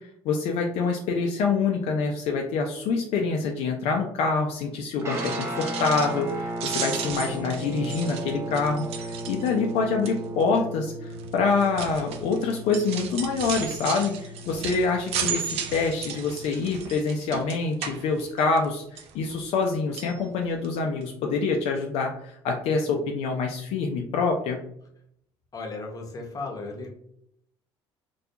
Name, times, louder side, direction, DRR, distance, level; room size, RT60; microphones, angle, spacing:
voice 1, 0.2-24.6, left 4 dB, 70° left, 1 dB, 0.4 m, -26 dB
Guitar, 5.0-16.5, right 1 dB, 25° right, 0.7 m, -36 dB
sound 1, 5.0-6.3 6.6-9.7 10.0-10.4 11.1-18.7 19.0-19.7 19.9-20.1 20.6-20.7 21.0-21.1, right 7 dB, 65° right, 0.4 m, -35 dB
voice 2, 25.5-26.9, left 3 dB, 35° left, 1 dB, 0.7 m, -35 dB
2.3 x 2.2 x 2.7 m, 0.71 s
supercardioid pair, 80°, 11 cm